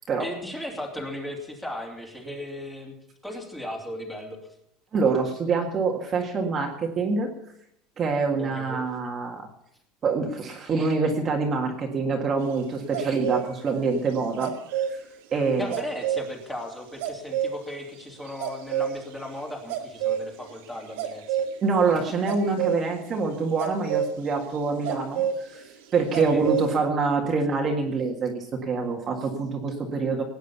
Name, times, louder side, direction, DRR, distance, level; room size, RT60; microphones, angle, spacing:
voice 1, 0.2-3.0 3.2-4.4 8.4-8.9 15.6-21.4 26.1-26.4, left 1 dB, 5° left, 1 dB, 2.8 m, -36 dB
voice 2, 4.9-7.3 8.0-9.5 10.0-14.6 14.9-15.0 15.3-15.7 21.6-30.2, right 4 dB, 25° right, 1 dB, 1.8 m, -25 dB
sound 1, 12.9-13.4 14.4-14.9 15.7-16.2 17.0-17.5 18.3-19.0 19.7-20.5 21.0-21.5 22.3-23.0 23.3-25.4 26.1-26.7, right 9 dB, 90° right, 2.3 m, -28 dB
18.0 x 9.2 x 6.9 m, 0.76 s
cardioid pair, 160°, 0 cm